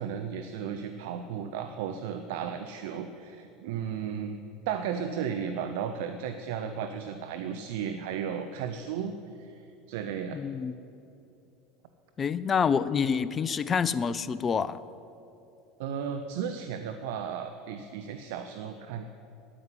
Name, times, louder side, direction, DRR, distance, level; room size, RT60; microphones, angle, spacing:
voice 1, 0.0-4.4 4.7-10.4 15.8-19.0, right 7 dB, 65° right, 8 dB, 0.6 m, -34 dB
voice 2, 10.3-10.7 12.2-14.8, left 6 dB, 30° left, 17 dB, 0.5 m, -27 dB
10.0 x 9.5 x 9.2 m, 2.8 s
hypercardioid pair, 75°, 0 cm